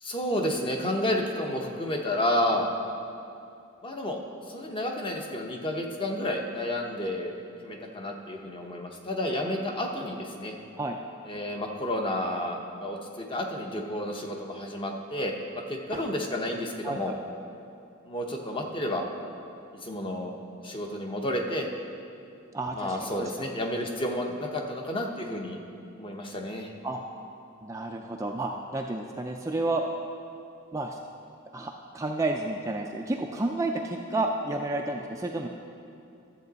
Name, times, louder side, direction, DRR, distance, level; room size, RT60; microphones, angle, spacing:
voice 1, 0.0-2.7 3.8-4.2 4.5-7.3 7.6-10.6 11.3-17.1 18.0-19.0 19.8-20.3 20.6-21.7 22.7-25.6 26.0-26.7, left 1 dB, 25° left, 2 dB, 0.8 m, -31 dB
voice 2, 16.8-17.2 22.5-23.3 26.8-27.0 27.6-29.8 30.7-31.0 31.5-35.5, right 2 dB, 15° right, 2 dB, 0.3 m, -31 dB
13.0 x 7.5 x 4.0 m, 2.6 s
head